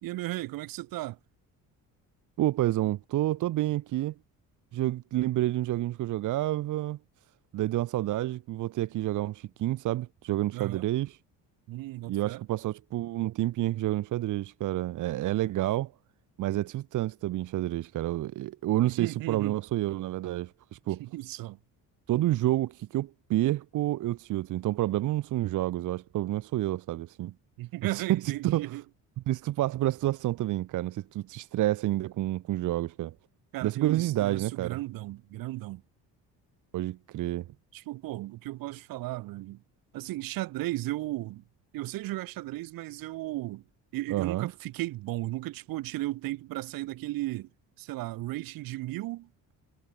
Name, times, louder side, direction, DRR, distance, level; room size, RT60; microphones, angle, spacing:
voice 1, 0.0-1.2 10.5-10.9 11.7-12.4 18.8-19.6 21.0-21.6 27.6-28.8 33.5-35.8 37.7-39.6 39.9-41.4 41.7-43.6 43.9-47.5 47.8-49.5, right 17 dB, 80° right, 1.5 m, -35 dB
voice 2, 2.4-4.1 4.7-7.0 7.5-11.2 12.1-15.9 16.4-21.0 22.1-27.3 27.9-28.7 29.3-33.1 33.6-34.8 36.7-37.4 44.1-44.5, right 15 dB, 60° right, 1.2 m, -29 dB
cardioid pair, 155°, 34 cm